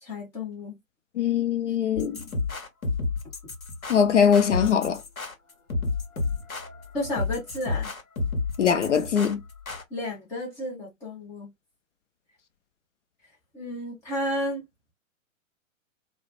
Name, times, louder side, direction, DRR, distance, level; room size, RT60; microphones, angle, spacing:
voice 1, 0.0-0.7 6.9-7.9 9.9-11.5 13.5-14.6, left 1 dB, 5° left, 0.5 m, -32 dB
voice 2, 1.2-2.2 3.9-5.0 8.6-9.4, left 7 dB, 60° left, 0.5 m, -22 dB
sound 1, 2.0-9.8, left 3 dB, 85° left, 0.9 m, -31 dB
2.3 x 2.0 x 2.9 m
figure-of-eight pair, 125°, 41 cm